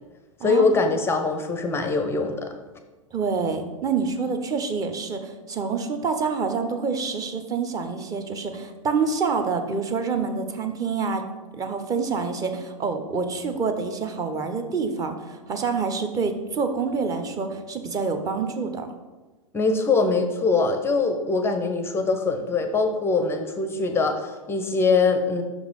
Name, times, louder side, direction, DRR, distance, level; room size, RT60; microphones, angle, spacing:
voice 1, 0.4-2.5 19.5-25.4, left 4 dB, 15° left, 7 dB, 0.6 m, -23 dB
voice 2, 3.1-11.2 11.5-18.9, right 5 dB, 20° right, 7 dB, 0.7 m, -27 dB
6.1 x 4.9 x 5.2 m, 1.2 s
figure-of-eight pair, 100°, 18 cm